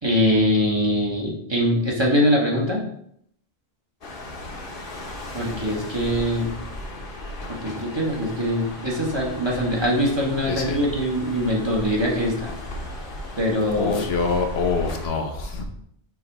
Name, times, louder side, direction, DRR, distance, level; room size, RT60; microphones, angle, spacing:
voice 1, 0.0-2.8 5.3-6.5 7.5-12.5 13.4-14.0, equal, 25° right, -3 dB, 1.4 m, -22 dB
sound 1, 4.0-15.1, left 1 dB, 60° left, 1.2 m, -36 dB
voice 2, 10.4-10.8 13.8-15.7, left 4 dB, 85° left, 4 dB, 1.1 m, -25 dB
6.2 x 3.3 x 4.7 m, 0.68 s
omnidirectional pair, 1.0 m